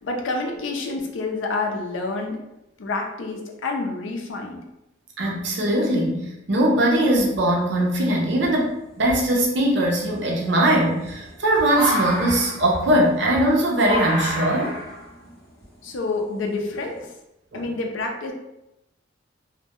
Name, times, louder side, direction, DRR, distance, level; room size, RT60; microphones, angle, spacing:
voice 1, 0.0-2.4 2.8-4.6 15.8-17.0 17.5-18.3, left 3 dB, 80° left, 2 dB, 0.5 m, -28 dB
voice 2, 5.2-14.7 17.5-17.6, right 1 dB, 65° right, -1 dB, 0.6 m, -21 dB
sound 1, 7.2-7.8 8.4-8.5 9.0-17.0, equal, 60° left, 0.8 m, -31 dB
2.2 x 2.1 x 2.9 m, 0.89 s
head